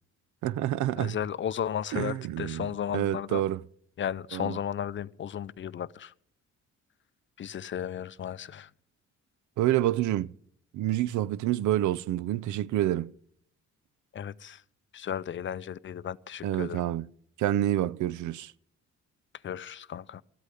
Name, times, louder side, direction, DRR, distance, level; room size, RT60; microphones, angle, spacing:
voice 1, 0.4-1.2 1.9-3.6 4.3-4.6 9.6-10.3 10.7-13.1 16.4-17.1 17.4-18.5, right 13 dB, 75° right, 0.5 m, -28 dB
voice 2, 1.0-3.4 4.0-6.1 7.4-8.7 14.1-14.6 14.9-16.8 19.4-20.2, left 9 dB, 40° left, 0.5 m, -34 dB
13.5 x 8.2 x 9.8 m
cardioid pair, 90°, 30 cm